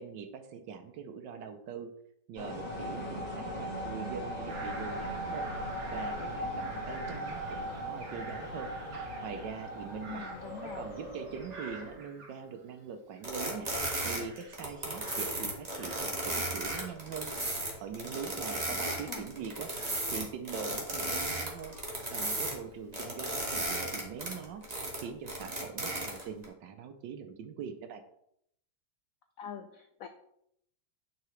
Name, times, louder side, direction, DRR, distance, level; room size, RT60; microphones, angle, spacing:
voice 1, 0.0-1.9 2.3-10.2 10.6-19.7 20.1-21.8 22.1-28.0, right 6 dB, 75° right, 7 dB, 1.3 m, -43 dB
sound 1, 2.3-12.0, equal, 20° left, 2.7 m, -39 dB
Bird vocalization bird call bird song / Crow, 4.5-12.8 13.1-16.3 16.5-22.6 23.1-23.6, right 2 dB, 50° right, 1.9 m, -50 dB
voice 2, 10.1-10.9 18.7-19.2 29.4-30.1, left 8 dB, 85° left, 7 dB, 0.7 m, -44 dB
sound 2, 13.2-22.5 22.9-26.4, right 1 dB, 20° right, 1.5 m, -35 dB
9.5 x 4.8 x 3.2 m, 0.74 s
omnidirectional pair, 2.1 m